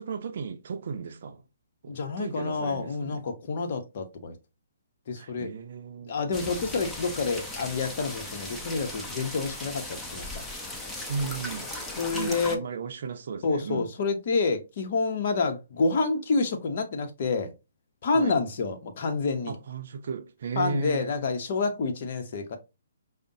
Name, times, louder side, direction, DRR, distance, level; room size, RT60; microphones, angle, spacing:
voice 1, 0.0-1.4 1.8-3.2 5.2-6.2 11.1-13.9 18.1-18.4 19.5-21.1, right 5 dB, 60° right, 0.5 m, -35 dB
voice 2, 1.9-4.4 5.1-5.5 6.1-10.4 12.0-12.6 13.4-17.5 18.0-19.6 20.6-22.6, left 4 dB, 50° left, 0.8 m, -28 dB
sound 1, 6.3-12.6, left 1 dB, 5° left, 0.6 m, -37 dB
4.9 x 2.1 x 2.7 m
hypercardioid pair, 140°, 0 cm